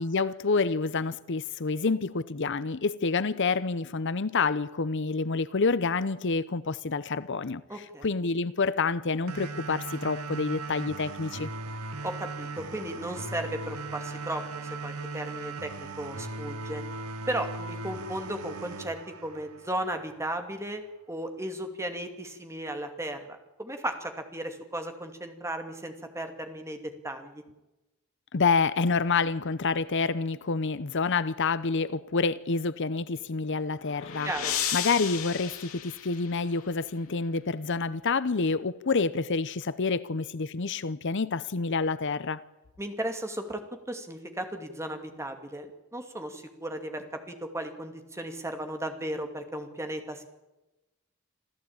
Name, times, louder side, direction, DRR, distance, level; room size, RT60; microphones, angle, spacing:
voice 1, 0.0-11.5 28.3-34.3 34.7-42.4, left 4 dB, 55° left, 0.7 m, -28 dB
voice 2, 7.7-8.1 12.0-16.8 17.3-20.8 21.1-26.8 27.0-27.4 34.2-34.5 42.8-43.6 43.9-50.2, right 1 dB, 15° right, 2.5 m, -35 dB
sound 1, 9.3-20.3, right 3 dB, 85° right, 2.0 m, -38 dB
sound 2, 33.4-36.7, left 9 dB, 70° left, 3.2 m, -34 dB
27.0 x 14.5 x 8.8 m
head